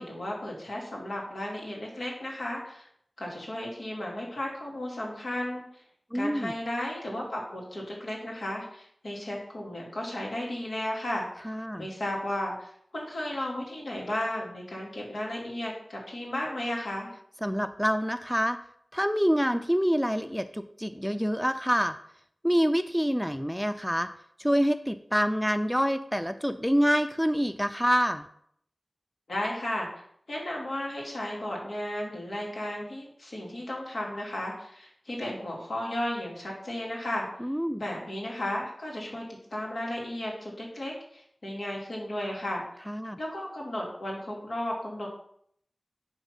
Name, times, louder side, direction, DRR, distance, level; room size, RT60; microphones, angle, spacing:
voice 1, 0.0-2.9 3.2-5.8 6.1-11.3 11.8-17.1 29.3-29.9 30.3-37.3 37.8-39.2 39.5-42.6 43.2-45.1, left 1 dB, 90° left, -3 dB, 2.6 m, -34 dB
voice 2, 6.1-6.5 11.4-11.9 17.4-18.6 18.9-22.0 22.4-24.1 24.4-28.3 37.4-37.8 42.9-43.2, equal, ahead, 10 dB, 0.5 m, -26 dB
10.5 x 3.6 x 5.7 m, 0.67 s
wide cardioid pair, 65°, 0 cm